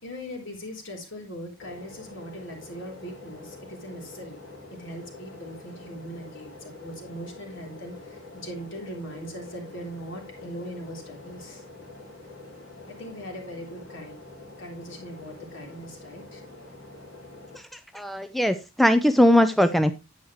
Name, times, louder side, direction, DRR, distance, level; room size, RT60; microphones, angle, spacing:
voice 1, 0.0-4.4 4.7-11.6 12.9-14.2 14.6-16.4, equal, 60° left, 1 dB, 3.6 m, -40 dB
sound 1, 1.6-17.6, left 2 dB, 80° left, 4.3 m, -45 dB
voice 2, 17.7-19.9, left 1 dB, ahead, 9 dB, 0.4 m, -20 dB
10.0 x 8.6 x 3.1 m, 0.25 s
head